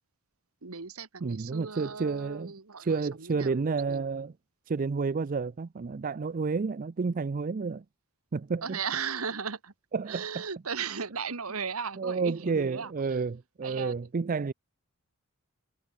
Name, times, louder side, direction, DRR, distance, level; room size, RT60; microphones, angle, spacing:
voice 1, 0.6-3.6 3.9-4.0 8.6-9.7 10.1-13.2 13.6-13.9, right 6 dB, 80° right, 1.6 m, -36 dB
voice 2, 1.2-2.5 2.8-4.3 4.7-7.8 8.3-8.8 9.9-10.4 12.0-14.5, right 4 dB, 40° right, 0.4 m, -30 dB
head